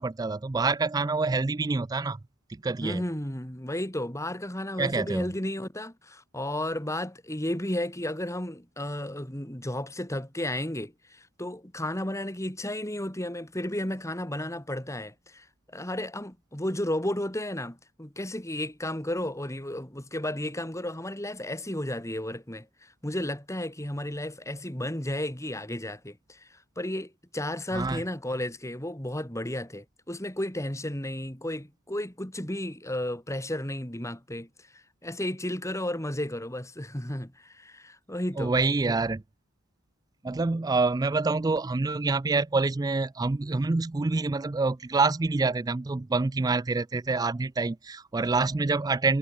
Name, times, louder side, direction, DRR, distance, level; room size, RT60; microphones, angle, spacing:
voice 1, 0.0-2.2 2.6-3.0 4.8-5.3 27.7-28.0 38.4-39.2 40.2-49.2, right 3 dB, 15° right, 0.3 m, -26 dB
voice 2, 2.8-38.5, left 1 dB, 15° left, 3.2 m, -33 dB
head